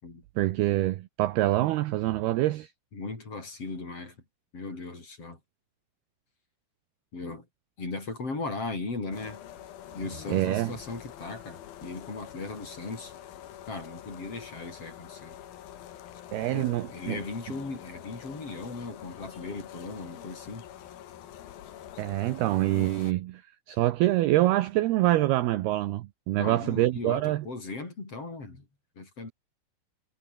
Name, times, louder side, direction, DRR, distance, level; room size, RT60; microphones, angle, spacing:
voice 1, 0.4-2.7 10.3-10.7 16.3-17.2 22.0-23.4 23.7-27.5, right 16 dB, 75° right, 2.4 m, -25 dB
voice 2, 2.9-4.2 4.5-5.4 7.1-7.5 7.8-9.4 9.9-13.1 13.7-15.4 16.5-20.6 26.4-28.6 29.0-29.3, left 3 dB, 30° left, 6.4 m, -37 dB
sound 1, 9.1-23.1, left 11 dB, 60° left, 3.1 m, -46 dB
omnidirectional pair, 5.6 m